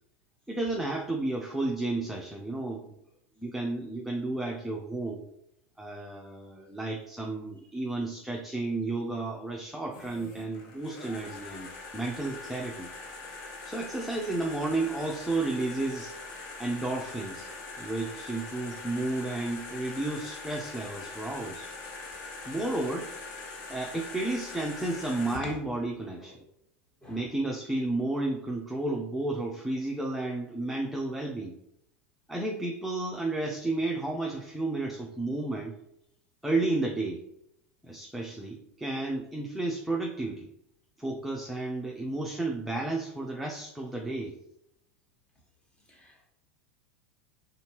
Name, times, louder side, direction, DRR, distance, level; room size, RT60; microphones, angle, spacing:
voice 1, 0.5-2.9 3.4-5.2 5.8-12.9 13.7-16.1 16.6-17.5 17.8-21.7 22.5-23.1 23.7-26.4 27.1-31.6 32.3-35.7 36.4-37.2 37.8-40.5 41.0-44.4, right 2 dB, ahead, -1 dB, 0.6 m, -32 dB
sound 1, 9.9-25.4, left 3 dB, 60° left, 1.1 m, -42 dB
voice 2, 45.9-46.3, left 1 dB, 15° left, -1 dB, 1.6 m, -44 dB
4.3 x 3.8 x 2.9 m, 0.77 s
hypercardioid pair, 100°, 7 cm